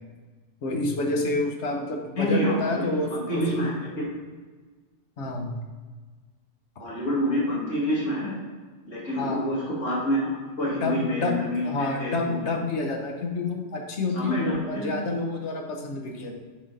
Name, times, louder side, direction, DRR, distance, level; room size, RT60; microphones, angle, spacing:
voice 1, 0.6-3.7 5.2-5.5 9.2-9.5 10.7-11.4 11.6-16.3, left 2 dB, 65° left, 2 dB, 1.3 m, -28 dB
voice 2, 2.2-4.0 6.8-8.3 8.9-12.5 14.1-14.4 14.7-14.9, equal, 90° left, -7 dB, 2.6 m, -27 dB
7.4 x 4.5 x 4.1 m, 1.4 s
omnidirectional pair, 1.3 m